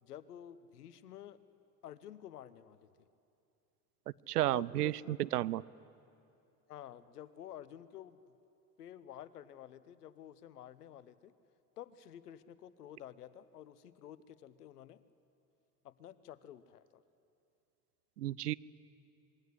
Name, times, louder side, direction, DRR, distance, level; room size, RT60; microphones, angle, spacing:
voice 1, 0.0-1.4 1.8-2.9 4.5-5.2 6.7-8.2 8.8-11.3 11.8-15.0 15.8-17.0, left 11 dB, 80° left, 16 dB, 1.0 m, -51 dB
voice 2, 4.3-5.6 18.2-18.5, right 14 dB, 85° right, 21 dB, 0.6 m, -32 dB
26.0 x 21.0 x 9.9 m, 2.7 s
figure-of-eight pair, 65°, 46 cm